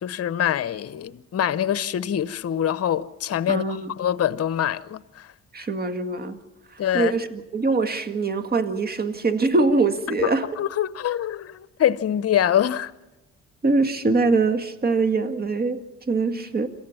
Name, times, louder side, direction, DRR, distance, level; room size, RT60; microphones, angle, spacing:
voice 1, 0.0-5.3 6.8-7.1 10.2-10.3 10.6-12.9, left 10 dB, 50° left, 1.0 m, -24 dB
voice 2, 3.5-3.9 5.5-6.4 6.9-10.5 13.6-16.7, right 3 dB, 30° right, 1.9 m, -23 dB
27.5 x 14.5 x 7.3 m
cardioid pair, 90°, 30 cm